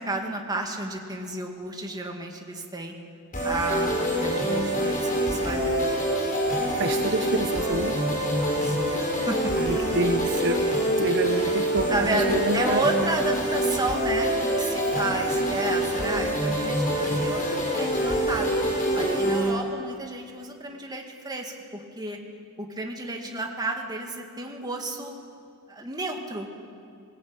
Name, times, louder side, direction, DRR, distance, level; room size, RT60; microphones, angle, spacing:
voice 1, 0.0-2.9 3.4-5.9 8.4-9.5 11.4-11.5 11.9-18.5 18.9-22.2 22.6-25.2 25.7-26.5, right 2 dB, 20° right, 2 dB, 2.3 m, -32 dB
sound 1, 3.3-19.5, right 1 dB, 40° left, 5.6 m, -25 dB
voice 2, 6.7-8.0 9.6-12.8, right 2 dB, 55° right, 6 dB, 1.1 m, -28 dB
20.5 x 20.0 x 8.9 m, 2.3 s
head